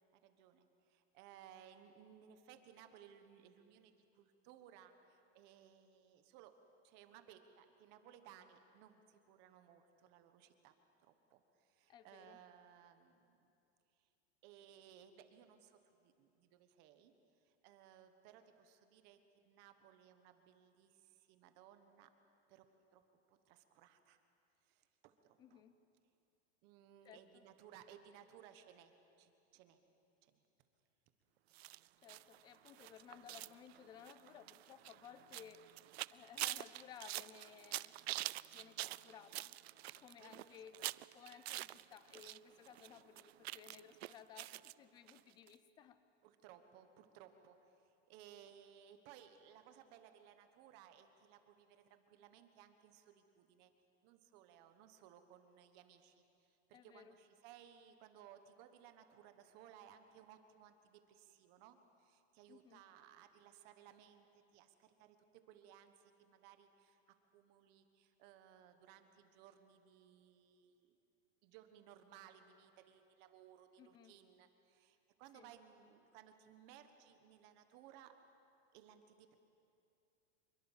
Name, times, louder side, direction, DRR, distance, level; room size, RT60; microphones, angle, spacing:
voice 1, 0.2-6.6 6.8-10.7 11.0-13.5 14.0-14.1 14.4-17.1 17.4-19.2 19.4-22.1 22.5-22.6 22.9-23.0 23.3-24.2 24.6-25.6 26.6-29.8 30.2-30.3 40.2-40.9 46.2-53.7 54.0-71.0 71.4-78.1 78.7-79.4, right 9 dB, 30° right, 8 dB, 1.3 m, -62 dB
voice 2, 11.9-12.4 25.4-25.8 27.0-27.4 32.0-35.8 36.1-38.0 38.5-39.6 39.9-40.8 41.1-46.0 56.7-57.2 62.5-62.8 73.8-74.2 75.3-75.5, left 8 dB, 15° left, 12 dB, 0.6 m, -58 dB
sound 1, 31.5-42.4 42.6-44.7 45.1-45.2 45.5-45.6, right 16 dB, 75° right, 0.5 m, -46 dB
26.0 x 21.5 x 7.4 m, 2.6 s
supercardioid pair, 170°, 32 cm